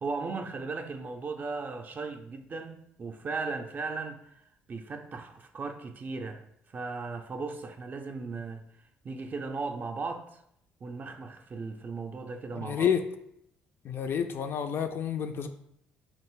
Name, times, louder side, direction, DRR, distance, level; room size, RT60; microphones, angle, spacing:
voice 1, 0.0-4.4 4.7-6.4 6.7-8.6 9.0-10.4 10.8-12.9, right 4 dB, 40° right, 0.4 m, -37 dB
voice 2, 12.6-13.0 13.8-15.5, left 8 dB, 50° left, 0.3 m, -29 dB
2.9 x 2.5 x 3.5 m
hypercardioid pair, 55°, 5 cm